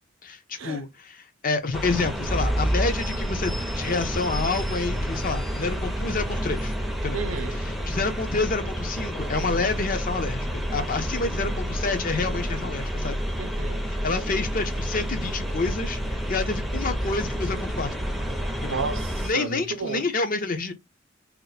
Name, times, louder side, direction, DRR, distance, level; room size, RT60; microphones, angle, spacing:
voice 1, 0.2-6.7 7.0-7.2 7.9-13.2 14.0-17.9 18.6-18.8 19.2-20.7, left 3 dB, 45° left, 0.6 m, -28 dB
sound 1, 1.7-19.3, equal, ahead, 0.5 m, -29 dB
voice 2, 7.1-7.6 13.4-13.8 18.7-20.1, right 4 dB, 85° right, 0.6 m, -32 dB
2.9 x 2.1 x 3.9 m
head